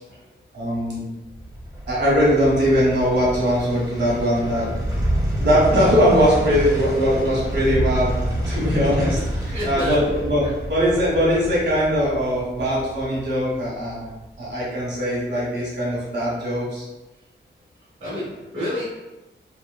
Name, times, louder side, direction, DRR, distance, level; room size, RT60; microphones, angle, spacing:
voice 1, 0.5-1.0 1.8-4.7 5.4-8.1 8.5-14.1 14.4-16.8, equal, 60° right, -6 dB, 1.3 m, -21 dB
sound 1, 1.2-14.4 14.8-14.9, right 1 dB, 20° right, 1.0 m, -28 dB
voice 2, 9.5-10.5 18.0-18.8, equal, 80° right, -10 dB, 1.2 m, -30 dB
2.9 x 2.2 x 2.2 m, 1.0 s
wide cardioid pair, 80°, 20 cm